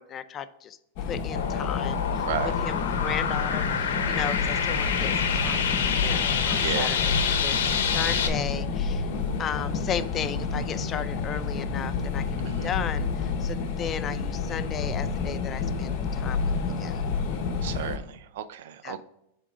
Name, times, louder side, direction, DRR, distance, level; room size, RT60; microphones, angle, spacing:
voice 1, 0.0-2.3 2.6-9.1 9.4-16.5 16.8-17.0 18.8-19.0, left 8 dB, 30° left, 13 dB, 0.4 m, -35 dB
sound 1, 1.0-18.0, left 4 dB, 50° left, 1.0 m, -29 dB
sound 2, 1.3-8.3, left 7 dB, 80° left, 0.8 m, -27 dB
voice 2, 4.1-4.4 6.6-6.9 12.4-12.7 17.6-19.0, right 10 dB, 70° right, 13 dB, 0.5 m, -34 dB
7.4 x 3.7 x 4.9 m, 0.79 s
supercardioid pair, 135°, 0 cm